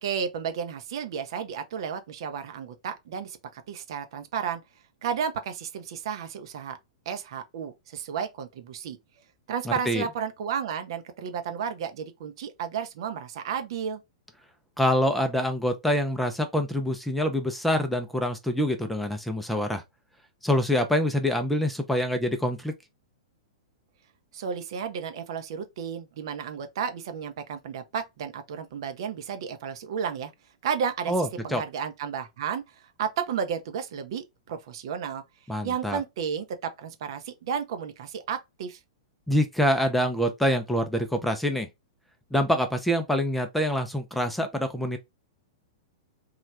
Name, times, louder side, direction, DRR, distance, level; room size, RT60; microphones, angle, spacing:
voice 1, 0.0-4.6 5.0-6.8 7.1-9.0 9.5-14.0 24.3-30.3 30.6-31.1 31.4-35.2 35.6-38.8, right 7 dB, 55° right, 0.6 m, -32 dB
voice 2, 9.7-10.1 14.8-19.8 20.4-22.7 31.1-31.6 35.5-36.0 39.3-41.7 42.3-45.0, equal, ahead, 0.5 m, -25 dB
3.2 x 2.3 x 3.2 m
figure-of-eight pair, 105°, 3 cm